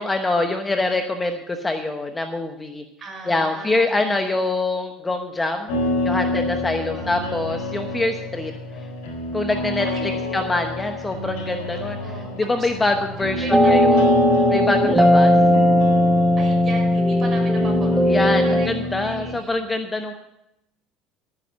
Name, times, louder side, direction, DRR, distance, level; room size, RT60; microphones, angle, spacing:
voice 1, 0.0-2.8 3.3-5.7 6.0-8.5 8.8-8.9 9.3-12.0 12.4-13.4 13.7-14.0 14.5-15.3 18.1-20.1, left 2 dB, 15° left, 6 dB, 1.0 m, -24 dB
voice 2, 3.0-4.3 6.7-7.1 9.8-10.5 12.0-12.7 13.3-14.2 16.4-18.1 18.3-19.7, right 3 dB, 30° right, 0 dB, 5.7 m, -37 dB
sound 1, 5.7-19.4, left 1 dB, 75° left, 4.1 m, -28 dB
sound 2, 13.5-18.7, left 1 dB, 5° right, 1.1 m, -17 dB
11.5 x 9.6 x 6.4 m, 0.85 s
supercardioid pair, 115°, 0 cm